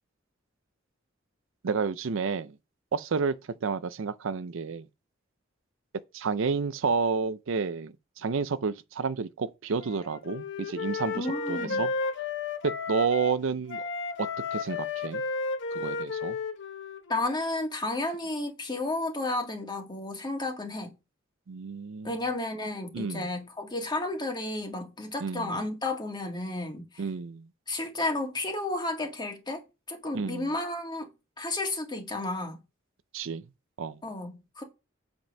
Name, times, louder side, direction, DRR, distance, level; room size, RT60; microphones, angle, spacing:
voice 1, 1.6-2.6 2.9-4.9 6.1-11.9 12.6-13.8 14.2-15.2 15.7-16.4 21.5-22.1 22.9-23.3 25.2-25.5 27.0-27.5 30.1-30.5 33.1-33.4 33.8-34.0, right 5 dB, 70° right, 0.5 m, -30 dB
Wind instrument woodwind instrument, 9.8-13.3 13.7-17.4, left 4 dB, 65° left, 1.0 m, -33 dB
voice 2, 11.1-11.8 17.1-20.9 22.0-27.0 27.7-31.1 31.4-32.6 34.0-34.6, left 2 dB, 20° left, 1.9 m, -32 dB
7.9 x 5.3 x 5.3 m
head